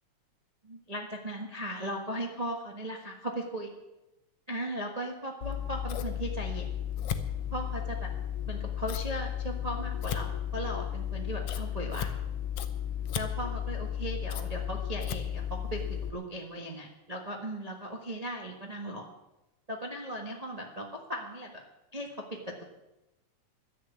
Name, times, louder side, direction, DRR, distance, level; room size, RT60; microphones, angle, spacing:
voice 1, 0.6-3.7 4.5-6.7 7.5-8.1 8.5-12.2 13.1-19.1 19.7-21.6 21.9-22.6, right 1 dB, 70° right, 1 dB, 0.3 m, -37 dB
Scissors, 5.4-16.1, left 9 dB, 65° left, 1.6 m, -34 dB
12.0 x 10.5 x 8.4 m, 0.97 s
omnidirectional pair, 3.4 m